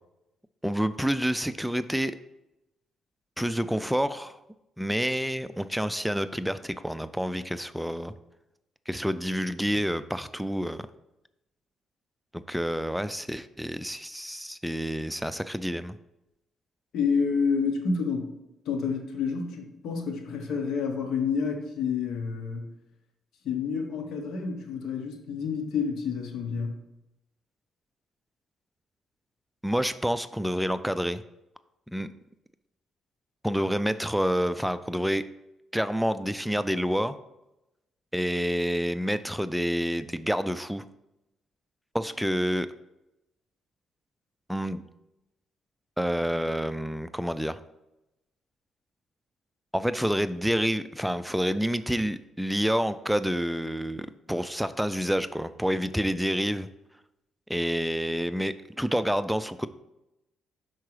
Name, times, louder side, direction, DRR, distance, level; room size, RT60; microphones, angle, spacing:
voice 1, 0.6-2.1 3.4-4.4 4.8-8.1 8.9-10.9 12.3-16.0 29.6-31.2 31.9-32.1 33.4-35.2 35.7-37.1 38.1-40.8 41.9-42.7 44.5-44.8 46.0-47.6 49.7-56.7 57.5-59.7, equal, ahead, 13 dB, 0.3 m, -28 dB
voice 2, 16.9-18.3 18.6-22.7 23.4-26.7, left 5 dB, 75° left, 3 dB, 1.0 m, -29 dB
5.9 x 4.6 x 4.8 m, 0.91 s
cardioid pair, 90°, 0 cm